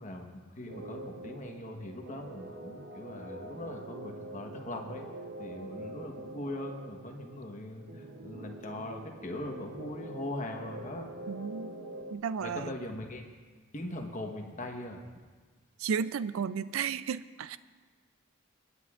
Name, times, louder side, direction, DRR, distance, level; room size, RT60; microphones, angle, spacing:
voice 1, 0.0-5.0 5.4-11.1 12.4-13.2 13.7-15.2, left 1 dB, 35° left, 3 dB, 1.2 m, -41 dB
sound 1, 0.7-12.2, right 1 dB, 55° right, 0.9 m, -45 dB
voice 2, 11.3-11.7 12.1-12.7 15.8-17.6, right 6 dB, 80° right, 15 dB, 0.4 m, -33 dB
26.5 x 9.8 x 2.5 m, 1.5 s
head